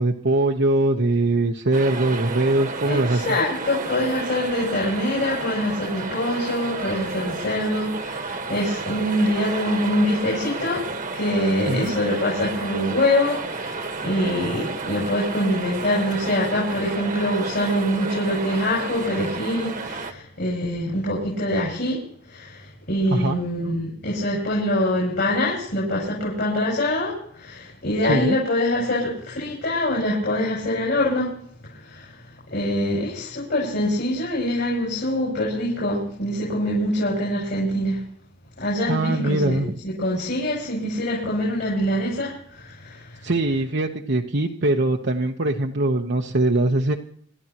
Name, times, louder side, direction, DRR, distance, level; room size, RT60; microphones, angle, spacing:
voice 1, 0.0-3.2 11.7-11.9 23.1-23.4 28.0-28.4 38.9-39.8 43.2-46.9, right 2 dB, 60° right, 1 dB, 1.0 m, -22 dB
sound 1, 1.7-20.1, right 4 dB, 45° right, 1.4 m, -32 dB
voice 2, 2.8-10.8 11.1-22.0 22.3-31.3 31.7-32.2 32.5-38.0 38.6-43.3, left 1 dB, 60° left, -4 dB, 7.4 m, -24 dB
28.0 x 12.0 x 3.0 m, 0.63 s
head